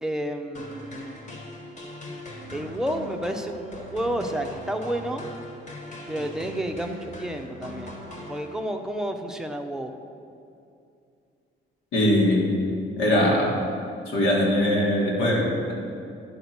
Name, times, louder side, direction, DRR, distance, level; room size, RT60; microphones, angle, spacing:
voice 1, 0.0-1.1 2.5-5.3 6.1-9.9, right 1 dB, 5° right, 4 dB, 0.6 m, -30 dB
sound 1, 0.5-8.9, left 1 dB, 40° left, 1.5 m, -40 dB
voice 2, 11.9-12.4 13.0-13.5 14.1-15.7, left 1 dB, 85° left, -3 dB, 2.0 m, -21 dB
10.0 x 3.9 x 5.9 m, 2.5 s
cardioid pair, 90°, 20 cm